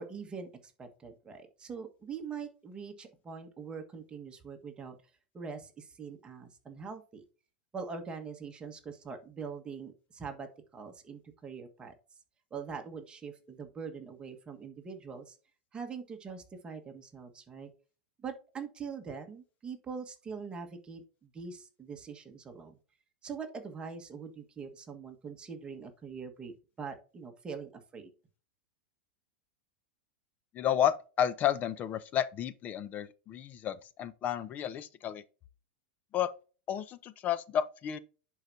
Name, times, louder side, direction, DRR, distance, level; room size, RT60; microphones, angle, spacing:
voice 1, 0.0-4.9 5.3-7.2 7.7-11.9 12.5-15.4 15.7-17.7 18.2-22.8 23.2-28.1, right 5 dB, 15° right, 1.4 m, -43 dB
voice 2, 30.5-35.2 36.1-36.3 36.7-38.0, left 10 dB, 30° left, 0.5 m, -31 dB
10.5 x 4.7 x 2.7 m
supercardioid pair, 135°, 5 cm